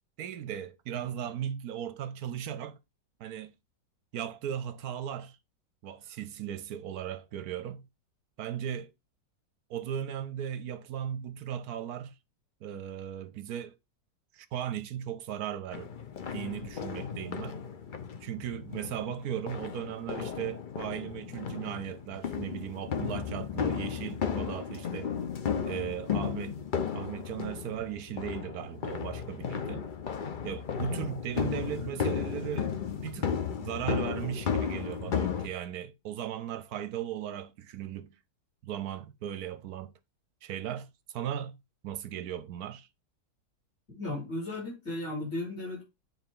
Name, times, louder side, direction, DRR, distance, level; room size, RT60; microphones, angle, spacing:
voice 1, 0.2-2.8 3.2-3.5 4.1-5.4 5.8-7.8 8.4-8.9 9.7-12.1 12.6-13.7 14.3-15.9 16.3-17.6 18.2-25.1 25.6-26.6 26.9-29.9 30.4-32.7 33.0-38.1 38.6-39.9 40.4-41.6 41.8-42.9, right 10 dB, 70° right, 1.0 m, -37 dB
sound 1, 15.7-35.5, left 7 dB, 80° left, 0.4 m, -34 dB
voice 2, 44.0-45.8, left 2 dB, 35° left, 5.0 m, -35 dB
9.0 x 3.9 x 3.7 m
omnidirectional pair, 1.9 m